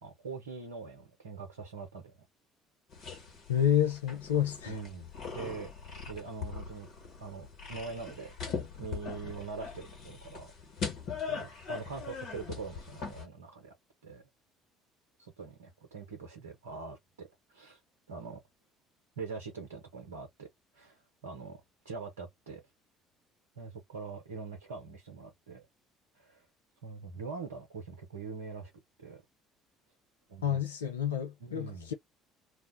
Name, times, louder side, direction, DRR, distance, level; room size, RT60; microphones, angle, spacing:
voice 1, 0.0-2.1 4.7-5.7 6.1-6.9 7.2-8.3 8.8-10.5 11.3-13.7 14.0-14.2 15.2-17.8 18.1-18.4 19.2-20.5 20.7-21.6 21.8-22.6 23.6-25.7 26.2-26.4 26.8-28.7 29.0-29.2 30.3-30.6 31.4-31.9, right 4 dB, 80° right, 0.6 m, -43 dB
sound 1, 2.9-13.3, left 5 dB, 60° left, 1.3 m, -41 dB
voice 2, 3.5-4.8 30.4-31.9, left 10 dB, 80° left, 0.4 m, -29 dB
2.4 x 2.1 x 3.5 m
figure-of-eight pair, 55°, 0 cm